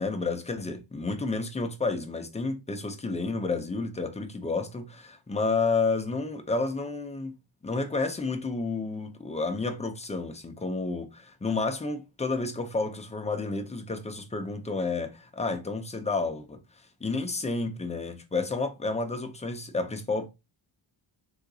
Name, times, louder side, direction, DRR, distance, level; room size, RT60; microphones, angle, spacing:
voice 1, 0.0-7.3 7.6-20.3, left 3 dB, 15° left, 0.4 m, -30 dB
3.7 x 2.7 x 2.6 m
wide cardioid pair, 155°, 47 cm